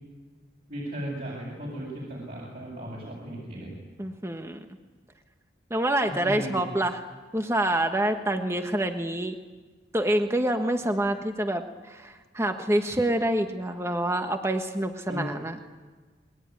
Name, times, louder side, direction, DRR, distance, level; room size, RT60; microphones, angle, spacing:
voice 1, 0.7-3.7 6.1-6.7 15.1-15.3, right 1 dB, 55° right, -5 dB, 7.9 m, -36 dB
voice 2, 4.0-4.6 5.7-7.0 7.3-9.4 9.9-15.6, right 1 dB, 15° right, 6 dB, 1.3 m, -27 dB
29.0 x 21.0 x 9.7 m, 1.4 s
head